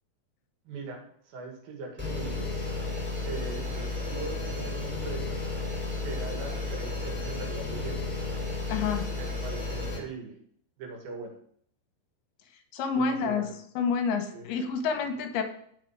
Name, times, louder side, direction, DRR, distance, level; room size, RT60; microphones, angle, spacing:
voice 1, 0.7-2.7 3.2-5.4 6.0-8.1 9.1-10.4 10.8-11.4 13.0-13.5 14.3-14.5, right 4 dB, 70° right, 2 dB, 3.6 m, -40 dB
sound 1, 2.0-10.0, left 3 dB, 5° right, 2.3 m, -33 dB
voice 2, 8.7-9.1 12.7-13.5 13.8-15.4, left 5 dB, 80° left, 5 dB, 3.0 m, -28 dB
9.0 x 6.7 x 4.7 m, 0.64 s
omnidirectional pair, 4.6 m